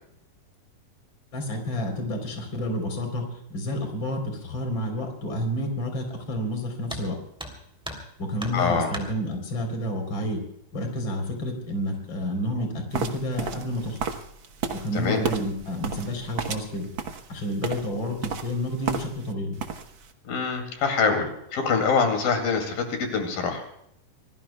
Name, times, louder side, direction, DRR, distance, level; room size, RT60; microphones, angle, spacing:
voice 1, 1.3-7.2 8.2-10.4 10.7-14.0 14.8-16.9 17.3-19.6, equal, 35° left, 4 dB, 4.2 m, -30 dB
sound 1, 6.9-7.1 7.4-8.1 8.4-9.1 10.3-10.4 10.9-11.0 11.7-12.1 12.4-12.8, equal, ahead, 2.5 m, -37 dB
voice 2, 8.5-8.9 14.9-15.2 20.3-23.7, left 5 dB, 80° left, 5 dB, 4.2 m, -25 dB
sound 2, 12.9-19.3 19.6-20.1, right 5 dB, 65° right, 1.2 m, -33 dB
26.5 x 20.0 x 2.3 m, 0.73 s
omnidirectional pair, 4.1 m